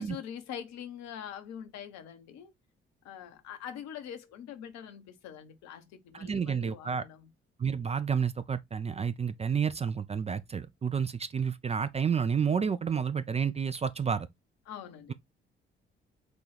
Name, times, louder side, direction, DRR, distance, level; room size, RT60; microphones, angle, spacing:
voice 1, 0.0-2.5 3.0-7.3 14.7-15.1, left 9 dB, 65° left, 0.8 m, -44 dB
voice 2, 6.2-7.0 7.6-14.3, right 6 dB, 20° right, 0.4 m, -30 dB
6.0 x 2.3 x 3.2 m
figure-of-eight pair, 40°, 29 cm